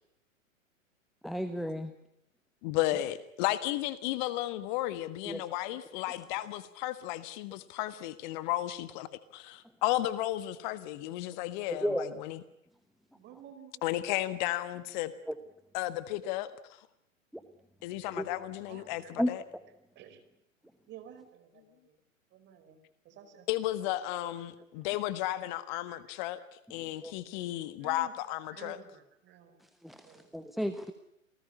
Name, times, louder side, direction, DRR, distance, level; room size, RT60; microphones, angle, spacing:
voice 1, 1.2-1.9 5.3-5.4 11.7-12.1 15.3-15.4 18.2-18.3 19.2-19.3 27.0-27.1 29.8-30.9, equal, ahead, 11 dB, 1.1 m, -32 dB
voice 2, 2.6-12.4 13.8-15.1 15.7-16.9 17.8-19.4 23.5-28.8, left 15 dB, 35° left, 14 dB, 1.5 m, -34 dB
voice 3, 13.1-14.3 18.7-19.1 19.9-20.2 20.9-22.0 22.3-22.8 23.0-24.3 24.8-24.9 25.9-26.0 26.4-26.5 27.8-28.1 28.5-29.6 30.0-30.3, right 10 dB, 25° right, 8 dB, 4.7 m, -52 dB
28.5 x 19.0 x 9.7 m, 0.80 s
figure-of-eight pair, 105°, 40 cm